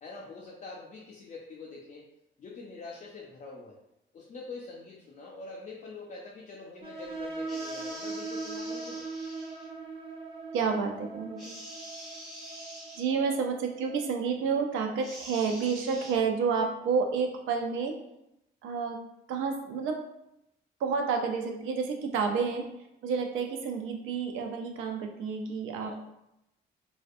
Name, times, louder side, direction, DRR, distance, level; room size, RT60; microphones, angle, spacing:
voice 1, 0.0-2.1 2.4-3.8 4.1-9.0 22.3-22.5 25.8-26.0, left 3 dB, 40° left, -3 dB, 0.4 m, -45 dB
sound 1, 6.8-14.1, right 3 dB, 30° right, 0.5 m, -40 dB
sound 2, 7.5-9.7 11.4-13.0 15.0-16.1, equal, ahead, 1.0 m, -45 dB
voice 2, 10.5-11.6 13.0-17.9 18.6-19.0 19.3-20.0 20.8-22.6 23.0-26.0, right 5 dB, 90° right, 3 dB, 0.4 m, -30 dB
2.5 x 2.1 x 2.4 m, 0.86 s
cardioid pair, 90°, 20 cm